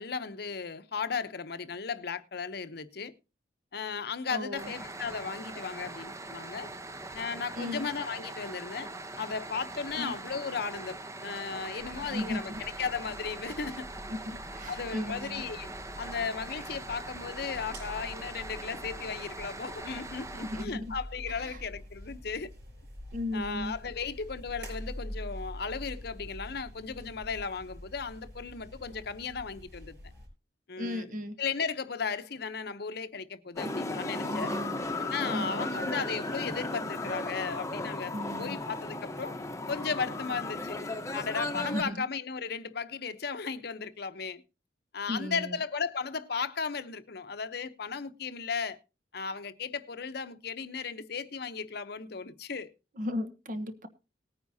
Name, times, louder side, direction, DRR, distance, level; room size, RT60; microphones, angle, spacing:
voice 1, 0.0-3.1 3.7-6.7 7.1-8.9 9.2-13.9 14.7-15.7 16.0-22.5 23.3-30.0 30.7-31.1 31.4-34.5 35.0-39.4 39.7-40.8 41.1-44.4 44.9-48.8 49.1-52.7, left 5 dB, 65° left, 0.8 m, -35 dB
voice 2, 4.3-4.7 7.5-7.9 10.0-10.1 12.0-12.6 14.1-15.4 20.4-20.9 21.3-21.6 23.1-23.7 30.8-31.4 34.2-34.8 35.3-35.6 38.1-38.6 41.5-42.0 45.1-45.6 53.0-53.9, left 1 dB, 50° right, 1.2 m, -36 dB
sound 1, 4.6-20.7, right 2 dB, 20° right, 0.8 m, -42 dB
sound 2, 11.8-30.3, equal, 75° right, 5.8 m, -46 dB
sound 3, 33.6-41.8, left 2 dB, 15° left, 0.9 m, -35 dB
19.0 x 9.5 x 2.7 m
head